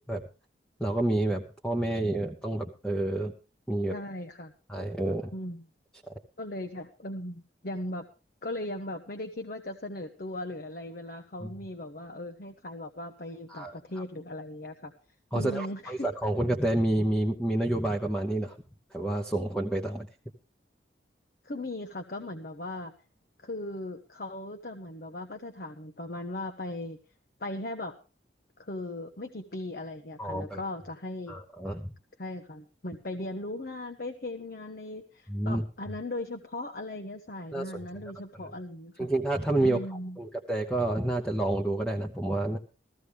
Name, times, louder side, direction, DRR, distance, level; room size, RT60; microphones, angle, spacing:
voice 1, 0.8-3.3 3.7-4.0 4.7-5.3 11.4-11.5 13.5-14.0 15.3-18.6 18.9-20.1 30.2-30.6 31.3-31.9 35.3-35.6 37.5-37.7 39.0-42.6, right 1 dB, 5° left, -1 dB, 0.9 m, -29 dB
voice 2, 3.9-4.5 5.3-5.6 6.4-8.1 8.4-14.9 15.3-16.1 21.4-22.9 23.4-27.0 27.4-28.0 28.6-31.4 32.2-39.1 39.6-40.2, left 1 dB, 55° left, 6 dB, 0.9 m, -38 dB
15.0 x 14.5 x 3.4 m, 0.32 s
head